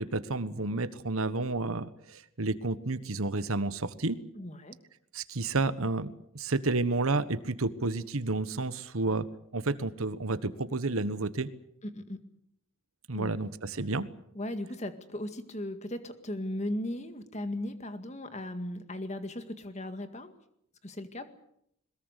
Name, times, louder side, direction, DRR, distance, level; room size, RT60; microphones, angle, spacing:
voice 1, 0.0-4.2 5.1-9.3 9.5-11.5 13.1-14.1, right 3 dB, 75° right, 14 dB, 1.3 m, -31 dB
voice 2, 4.4-4.8 11.8-12.2 13.1-13.4 14.4-20.3 20.8-21.3, left 1 dB, 30° left, 9 dB, 1.9 m, -37 dB
22.0 x 21.0 x 8.3 m, 0.74 s
head